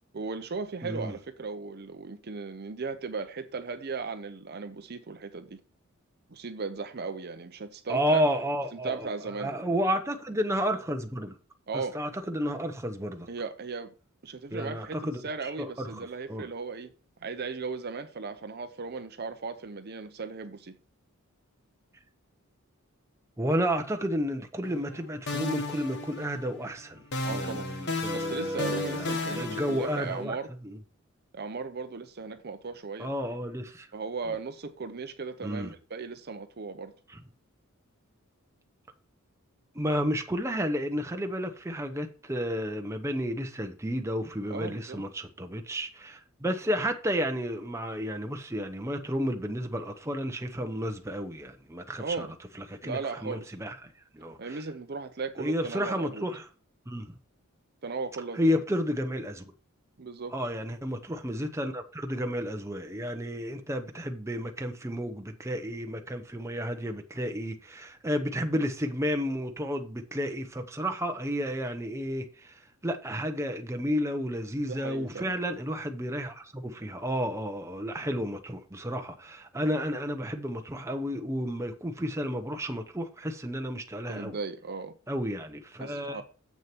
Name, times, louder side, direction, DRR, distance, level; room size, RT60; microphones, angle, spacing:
voice 1, 0.1-5.6 6.3-8.2 8.7-9.5 11.7-12.0 13.3-13.9 14.2-16.9 17.2-20.8 27.2-27.7 28.1-30.5 31.3-33.1 33.9-36.9 44.5-45.0 52.0-52.3 52.8-53.5 54.4-56.3 57.8-58.6 60.0-60.3 74.7-75.3 84.1-85.0 85.8-86.2, right 4 dB, 50° right, 0.7 m, -37 dB
voice 2, 0.8-1.2 7.9-9.1 9.4-11.3 11.7-13.3 14.5-15.2 15.6-16.5 23.4-27.0 27.3-30.4 30.6-30.8 33.0-33.9 35.4-35.7 39.7-52.3 52.7-54.6 55.4-56.5 56.9-57.1 58.3-59.4 60.3-84.4 85.1-86.2, equal, 15° right, 0.8 m, -32 dB
sound 1, 24.6-25.0 25.3-26.7 27.1-30.2, left 2 dB, 55° left, 1.3 m, -34 dB
7.5 x 6.4 x 4.4 m
head